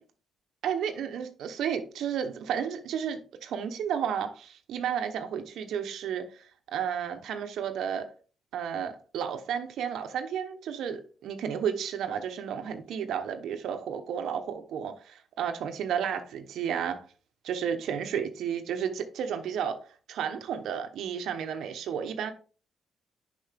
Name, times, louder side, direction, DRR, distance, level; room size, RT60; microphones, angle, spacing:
voice 1, 0.6-8.1 8.5-17.0 17.4-19.8 20.1-22.3, right 8 dB, 75° right, 0.9 m, -32 dB
6.6 x 5.4 x 3.4 m
cardioid pair, 90°, 0 cm